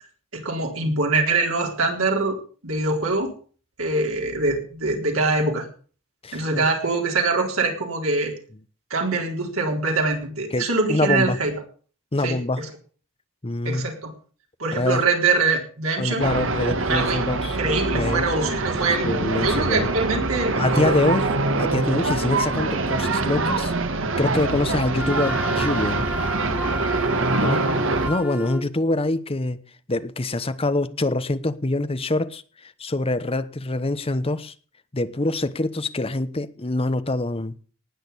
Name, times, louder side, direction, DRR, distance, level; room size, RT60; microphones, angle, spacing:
voice 1, 0.3-2.4 2.6-3.3 3.8-5.6 6.3-8.3 8.9-11.5 12.2-12.6 13.6-14.1 14.6-16.3 16.9-17.2 17.6-20.9 27.3-27.6, right 3 dB, 85° right, 4.1 m, -24 dB
voice 2, 6.2-6.6 10.5-11.4 12.1-12.6 13.4-13.9 14.8-15.0 16.0-17.6 17.9-18.2 19.0-19.9 20.6-23.7 24.2-26.1 27.4-27.6 28.1-29.6 29.9-34.5 34.9-37.5, left 2 dB, 25° left, 1.0 m, -25 dB
sound 1, 16.2-28.1, right 2 dB, 65° right, 1.6 m, -24 dB
Wind instrument woodwind instrument, 25.0-28.7, left 1 dB, 5° right, 1.4 m, -31 dB
19.0 x 6.6 x 8.4 m
head